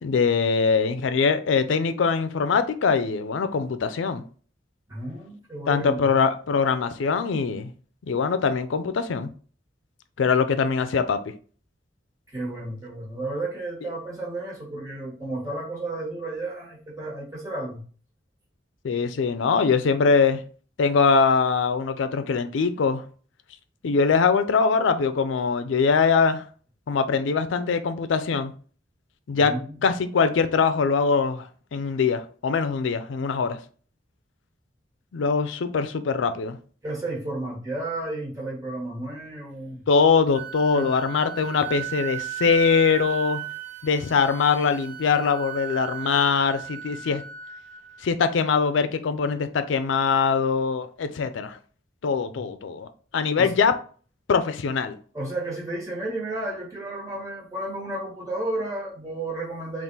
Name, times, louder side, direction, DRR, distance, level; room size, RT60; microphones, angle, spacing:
voice 1, 0.0-4.2 5.7-7.7 8.1-9.3 10.2-11.2 18.8-20.4 20.8-23.0 23.8-26.4 26.9-28.5 29.3-29.5 29.8-33.6 35.1-36.6 39.9-43.4 43.8-47.2 48.0-51.6 52.0-53.7 54.3-55.0, left 5 dB, 85° left, 0.4 m, -22 dB
voice 2, 4.9-6.1 12.3-17.8 29.4-29.8 36.8-39.9 40.7-40.9 52.3-52.4 53.4-53.5 55.1-59.8, right 2 dB, 20° right, 1.3 m, -32 dB
Wind instrument woodwind instrument, 40.3-48.1, right 11 dB, 45° right, 0.6 m, -36 dB
3.6 x 2.4 x 3.9 m
head